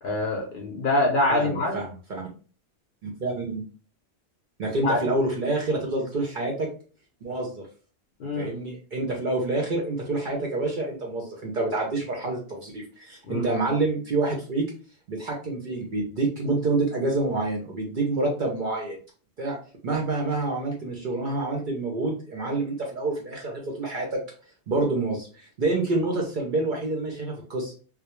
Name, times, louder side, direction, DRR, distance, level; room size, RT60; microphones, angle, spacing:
voice 1, 0.0-1.7 4.8-5.1 8.2-8.5 13.2-13.5, left 2 dB, 55° left, -1 dB, 0.6 m, -25 dB
voice 2, 1.3-2.2 3.0-3.7 4.6-6.7 7.2-7.7 8.4-14.7 15.1-19.0 19.4-19.6 19.8-24.2 24.7-27.7, right 2 dB, 55° right, 0 dB, 0.6 m, -27 dB
2.2 x 2.0 x 2.9 m, 0.40 s
omnidirectional pair, 1.2 m